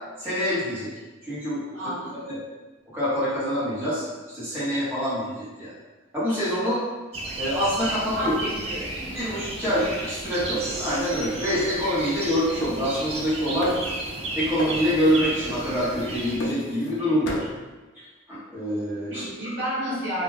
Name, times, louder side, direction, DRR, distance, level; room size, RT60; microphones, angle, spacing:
voice 1, 0.2-0.9 1.2-1.6 2.2-2.4 2.9-5.7 6.1-6.8 7.4-8.3 9.1-13.8 14.3-17.5 18.0-19.5, equal, 10° right, -12 dB, 0.8 m, -26 dB
voice 2, 1.7-2.1 8.1-9.1 19.1-20.2, right 1 dB, 60° right, -8 dB, 0.9 m, -31 dB
sound 1, 7.1-16.4, right 2 dB, 30° right, 0.3 m, -33 dB
sound 2, 10.4-12.3 12.6-13.3 13.6-14.3 14.6-15.2 15.5-17.0 17.3-17.5, left 2 dB, 65° left, 0.4 m, -35 dB
2.1 x 2.1 x 3.1 m, 1.2 s
head